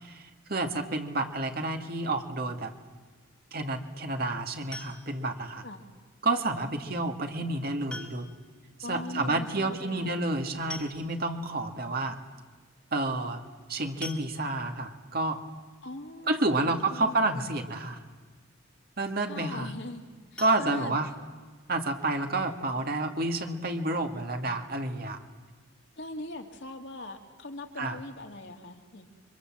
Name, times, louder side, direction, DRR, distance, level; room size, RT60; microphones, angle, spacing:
voice 1, 0.0-2.7 3.5-5.6 6.2-8.3 8.9-12.2 12.9-13.4 13.7-15.4 16.3-18.0 19.0-19.7 20.4-21.1 21.7-25.2 27.8-28.0, right 2 dB, 50° right, 5 dB, 2.1 m, -30 dB
sound 1, 4.7-5.3 6.8-6.9 7.9-8.5 8.8-8.9 9.2-9.3 10.3-10.4 10.7-11.4 12.0-12.1 12.4-12.6 14.0-14.8 20.3-21.5 21.9-22.0 22.4-22.5 22.9-23.0, left 2 dB, 5° left, 2.1 m, -44 dB
voice 2, 8.8-10.2 15.8-17.2 19.3-20.0 20.3-21.0 26.0-29.0, left 2 dB, 60° left, 3 dB, 2.5 m, -41 dB
29.5 x 24.5 x 7.5 m, 1.4 s
head